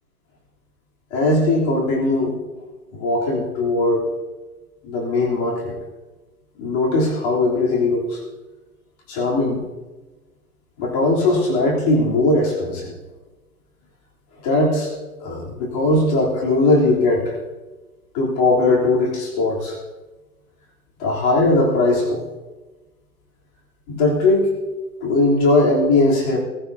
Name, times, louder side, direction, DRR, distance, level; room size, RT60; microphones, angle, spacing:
voice 1, 1.1-2.4 2.9-4.0 4.8-5.7 6.6-8.2 9.1-9.7 10.8-12.9 14.4-14.9 15.2-17.3 18.1-19.8 21.0-22.2 23.9-24.5 25.0-26.4, left 2 dB, 35° left, -3 dB, 3.4 m, -19 dB
18.0 x 15.5 x 2.8 m, 1.2 s
figure-of-eight pair, 115°, 46 cm